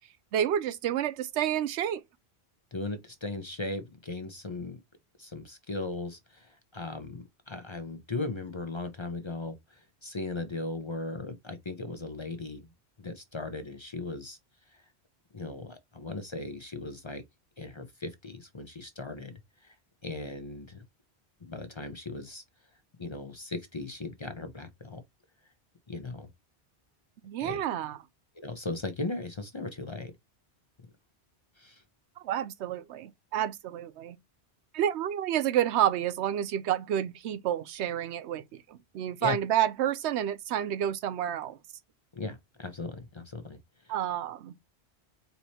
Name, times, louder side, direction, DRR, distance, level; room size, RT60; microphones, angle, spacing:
voice 1, 0.3-2.0 27.2-28.0 32.2-34.2 34.7-41.6 43.9-44.5, right 10 dB, 85° right, 0.9 m, -29 dB
voice 2, 2.7-4.8 5.2-12.7 13.0-14.4 14.7-14.8 15.3-17.2 17.6-19.3 19.6-19.7 20.0-20.8 21.4-22.4 23.0-25.0 25.9-26.3 27.4-27.6 28.4-30.1 31.6-31.8 39.2-39.4 42.1-43.6 43.8-43.9, left 2 dB, 30° left, 0.6 m, -37 dB
4.6 x 2.9 x 2.8 m
omnidirectional pair, 1.1 m